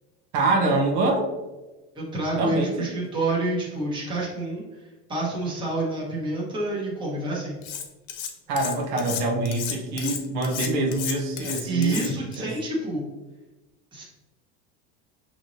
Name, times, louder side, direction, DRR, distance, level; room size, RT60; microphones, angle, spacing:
voice 1, 0.3-1.3 2.4-2.9 8.5-12.0 12.4-12.5, right 2 dB, 85° right, 1 dB, 1.0 m, -25 dB
voice 2, 1.9-7.6 11.4-13.1 13.9-14.0, right 2 dB, 15° right, -4 dB, 1.1 m, -28 dB
Cutlery silverware, 7.6-8.3 8.6-12.4, left 8 dB, 75° left, 0.8 m, -33 dB
6.2 x 3.2 x 2.6 m, 1.1 s
cardioid pair, 165°, 34 cm